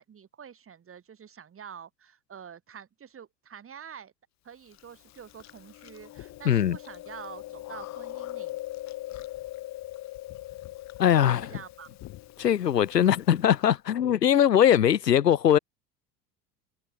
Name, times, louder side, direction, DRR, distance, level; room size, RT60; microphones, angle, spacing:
voice 1, 0.0-4.1 4.4-8.6 11.4-11.9, right 8 dB, 25° right, 7.3 m, -47 dB
Chewing mastication, 4.7-13.7, left 16 dB, 35° left, 1.2 m, -41 dB
voice 2, 6.4-6.8 11.0-11.5 12.4-15.6, left 10 dB, 75° left, 1.1 m, -21 dB
figure-of-eight pair, 75°, 49 cm